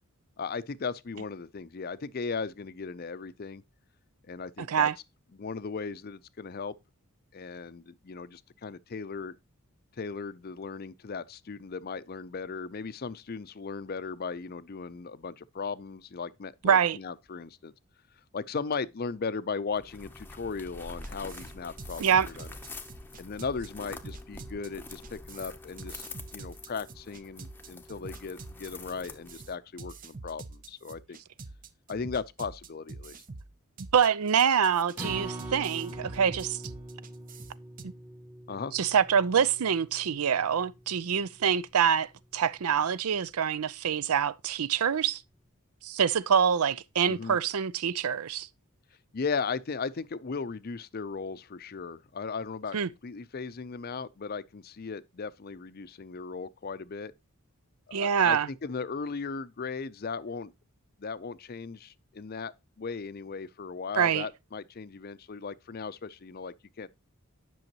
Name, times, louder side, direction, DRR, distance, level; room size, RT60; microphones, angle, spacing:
voice 1, 0.4-3.6 4.3-4.9 5.3-6.8 7.3-9.4 10.0-17.7 18.3-22.5 23.2-26.0 26.3-31.2 31.9-33.2 38.5-38.7 47.1-47.4 49.1-52.8 53.0-57.1 57.9-60.5 61.0-62.5 62.8-66.9, left 5 dB, 45° left, 0.5 m, -37 dB
voice 2, 16.6-17.0 22.0-22.3 33.9-36.6 38.7-45.2 45.8-48.5 52.7-52.9 57.9-58.5 63.9-64.3, right 7 dB, 80° right, 0.5 m, -25 dB
sound 1, 19.7-29.6, left 3 dB, 10° left, 0.7 m, -46 dB
sound 2, 21.0-37.9, right 3 dB, 40° right, 0.6 m, -46 dB
Acoustic guitar, 35.0-41.3 41.7-41.8 42.2-42.3, right 1 dB, 10° right, 1.2 m, -43 dB
10.5 x 6.3 x 2.9 m
head